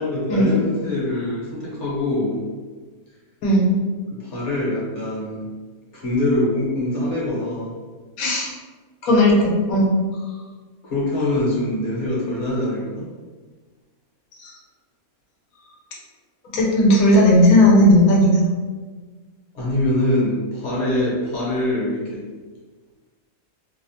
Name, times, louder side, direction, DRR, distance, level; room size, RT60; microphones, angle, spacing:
voice 1, 0.0-2.4 4.2-5.5 5.9-7.7 10.8-13.1 19.5-22.2, left 1 dB, 60° left, -6 dB, 1.0 m, -23 dB
voice 2, 8.2-8.5 9.0-9.9 14.4-14.5 16.5-18.5, left 1 dB, 80° left, -3 dB, 1.1 m, -15 dB
2.7 x 2.0 x 2.7 m, 1.4 s
omnidirectional pair, 1.5 m